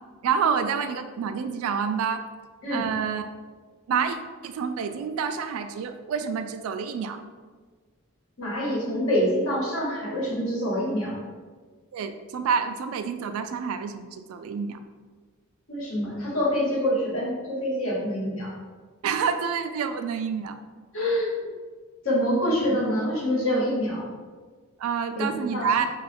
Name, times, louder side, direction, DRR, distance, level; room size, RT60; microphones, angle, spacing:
voice 1, 0.2-2.3 2.7-3.3 3.9-4.2 4.4-7.2 11.9-14.8 19.0-20.6 24.8-25.9, right 6 dB, 85° right, 8 dB, 0.3 m, -28 dB
voice 2, 8.4-11.1 15.7-18.5 20.9-21.4 22.0-24.1 25.2-25.7, equal, 80° left, -4 dB, 1.2 m, -26 dB
3.1 x 2.3 x 4.2 m, 1.5 s
head